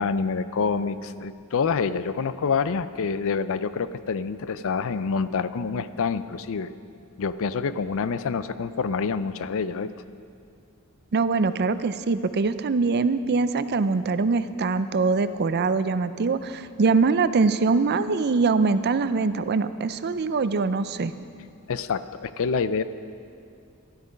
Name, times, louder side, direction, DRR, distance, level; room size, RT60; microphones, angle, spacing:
voice 1, 0.0-6.7 7.2-9.9 21.7-22.8, left 5 dB, 65° left, 13 dB, 0.5 m, -27 dB
voice 2, 11.1-21.1, right 4 dB, 50° right, 13 dB, 0.5 m, -23 dB
13.5 x 12.0 x 5.2 m, 2.4 s
head